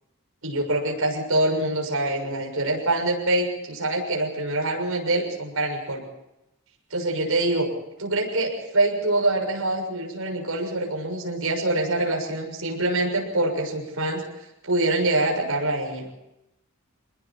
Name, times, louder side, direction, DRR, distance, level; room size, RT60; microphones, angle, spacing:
voice 1, 0.4-6.0 6.9-7.7 8.0-14.2 14.6-16.1, right 2 dB, 70° right, 1 dB, 6.7 m, -25 dB
27.0 x 21.0 x 4.6 m, 0.89 s
head